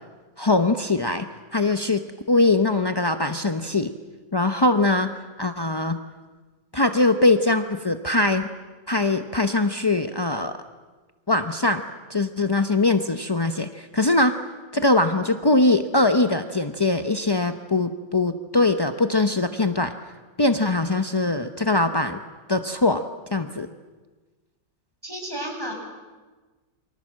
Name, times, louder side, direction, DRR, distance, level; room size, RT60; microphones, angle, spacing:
voice 1, 0.4-1.3 1.5-2.0 2.3-3.9 4.3-5.1 5.4-6.0 6.7-8.5 8.9-10.5 11.3-11.8 12.1-14.3 14.7-19.9 20.4-22.2 22.5-23.0 23.3-23.7, left 2 dB, 30° left, 7 dB, 0.4 m, -21 dB
voice 2, 25.0-25.7, right 1 dB, 10° right, 1 dB, 6.3 m, -32 dB
28.5 x 24.5 x 7.6 m, 1.3 s
omnidirectional pair, 1.9 m